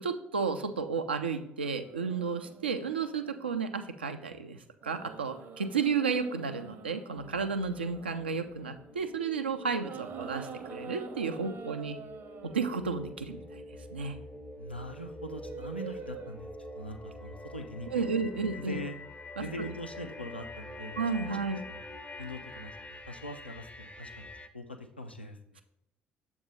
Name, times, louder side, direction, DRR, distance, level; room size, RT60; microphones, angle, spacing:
voice 1, 0.0-4.6 4.8-12.0 12.4-13.6 13.9-14.2 17.9-18.8 19.4-19.7 21.0-21.6, right 5 dB, 80° right, 7 dB, 0.3 m, -32 dB
sound 1, 1.6-3.8 4.8-9.1 9.8-12.7 15.0-16.6 17.9-18.1, right 5 dB, 45° right, 0.7 m, -47 dB
sound 2, 7.2-24.5, left 1 dB, 20° left, 0.5 m, -46 dB
voice 2, 14.6-18.2 18.5-19.0 19.4-21.0 21.3-21.4 21.7-21.8 22.2-25.6, equal, 90° left, 5 dB, 0.4 m, -42 dB
7.1 x 2.6 x 5.1 m, 0.86 s
figure-of-eight pair, 50°, 6 cm